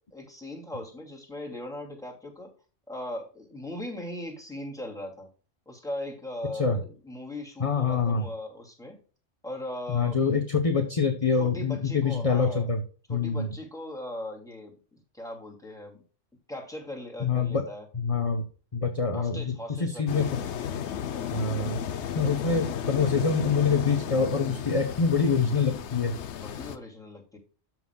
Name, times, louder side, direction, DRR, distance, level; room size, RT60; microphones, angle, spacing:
voice 1, 0.1-2.5 2.9-5.3 5.7-9.0 9.4-10.2 11.4-12.7 13.1-16.0 16.5-17.9 19.1-20.5 21.1-21.4 22.4-22.6 26.4-27.4, left 1 dB, 5° left, 0 dB, 2.5 m, -39 dB
voice 2, 7.6-8.3 9.9-12.8 13.1-13.5 17.2-17.7 17.9-18.4 18.7-20.4 21.3-21.8 22.1-26.1, left 5 dB, 30° left, 6 dB, 0.9 m, -25 dB
sound 1, 20.1-26.8, left 8 dB, 65° left, 1.0 m, -34 dB
13.0 x 6.0 x 2.3 m, 0.37 s
omnidirectional pair, 1.3 m